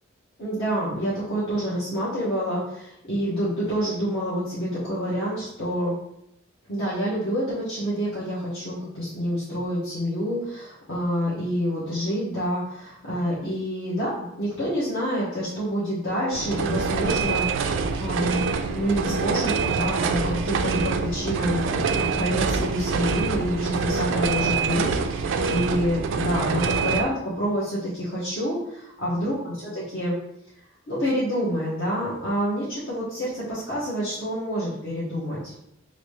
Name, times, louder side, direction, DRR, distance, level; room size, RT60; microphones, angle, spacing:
voice 1, 0.4-5.9 6.7-29.5 29.9-30.1 30.9-35.5, equal, 65° left, -11 dB, 1.1 m, -27 dB
sound 1, 16.3-27.0, right 5 dB, 65° right, 0.3 m, -25 dB
3.1 x 2.6 x 3.1 m, 0.78 s
head